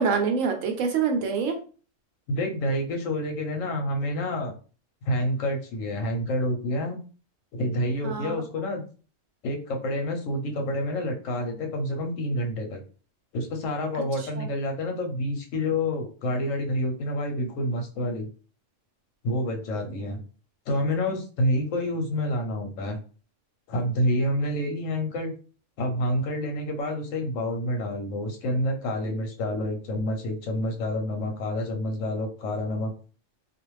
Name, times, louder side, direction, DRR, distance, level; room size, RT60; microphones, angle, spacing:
voice 1, 0.0-1.6 8.0-8.4 14.4-14.5 19.5-19.6 19.9-20.0, right 5 dB, 80° right, 4 dB, 1.0 m, -26 dB
voice 2, 2.3-4.6 5.1-7.0 7.5-8.8 9.4-12.8 13.3-18.3 19.2-20.2 20.7-23.0 23.7-25.3 25.8-32.9, left 1 dB, 85° left, 3 dB, 1.1 m, -28 dB
2.4 x 2.3 x 3.0 m, 0.38 s
omnidirectional pair, 1.3 m